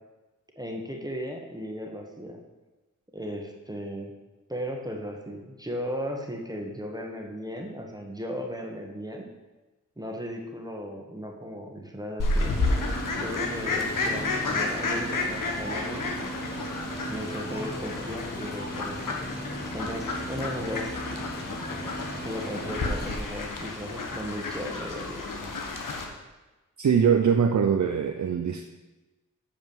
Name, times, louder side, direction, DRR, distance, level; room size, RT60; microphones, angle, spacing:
voice 1, 0.5-2.4 3.1-4.1 4.5-9.3 10.0-12.5 13.2-16.1 17.1-19.2 19.7-21.0 22.2-25.2, equal, 10° right, 1 dB, 1.5 m, -36 dB
Fowl, 12.2-26.0, left 3 dB, 90° left, 1.2 m, -31 dB
sound 1, 12.4-23.2, right 1 dB, 30° left, 1.7 m, -37 dB
voice 2, 26.8-28.7, right 7 dB, 65° right, 5 dB, 0.7 m, -22 dB
8.1 x 5.1 x 7.3 m, 1.1 s
cardioid pair, 45°, 32 cm